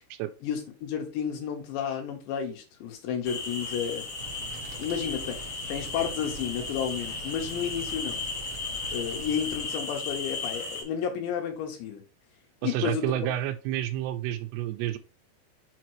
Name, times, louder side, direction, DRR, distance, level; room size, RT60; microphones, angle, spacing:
voice 1, 0.4-4.0 4.8-5.4 5.7-8.2 8.9-12.1 12.6-13.0, left 8 dB, 80° left, 3.5 m, -31 dB
sound 1, 3.2-10.8, left 3 dB, 50° left, 1.9 m, -35 dB
sound 2, 4.2-9.6, right 3 dB, 55° right, 1.8 m, -44 dB
voice 2, 12.6-15.0, right 13 dB, 80° right, 2.7 m, -29 dB
7.1 x 3.0 x 4.5 m
omnidirectional pair, 5.1 m